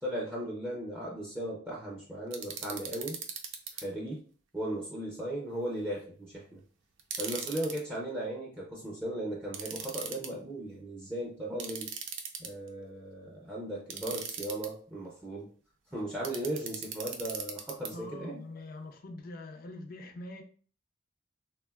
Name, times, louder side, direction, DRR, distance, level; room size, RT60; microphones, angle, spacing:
voice 1, 0.0-3.2 3.7-4.2 4.5-6.6 7.2-11.9 12.4-15.5 15.9-18.4, right 1 dB, 10° right, -5 dB, 0.5 m, -37 dB
sound 1, 2.3-3.8 7.0-7.8 9.5-10.3 11.6-12.7 13.9-14.7 16.2-17.9, right 7 dB, 85° right, 0.4 m, -39 dB
voice 2, 17.9-20.4, left 2 dB, 50° left, 4 dB, 0.4 m, -44 dB
3.5 x 2.1 x 2.2 m, 0.43 s
head